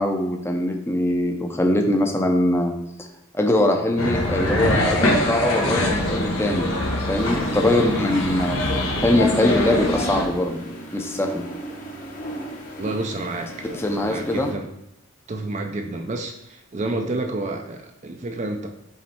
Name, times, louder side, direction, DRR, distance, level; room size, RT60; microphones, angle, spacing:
voice 1, 0.0-2.7 3.0-3.1 3.3-6.7 7.1-10.6 10.9-11.4 13.7-14.5, left 1 dB, 10° left, 3 dB, 0.6 m, -22 dB
sound 1, 4.0-10.2, left 1 dB, 85° left, 1.3 m, -23 dB
sound 2, 7.2-14.5, right 1 dB, 40° left, 1.0 m, -36 dB
voice 2, 12.8-14.7 15.3-18.7, right 2 dB, 35° right, 4 dB, 0.4 m, -30 dB
7.2 x 3.2 x 4.3 m, 0.89 s
head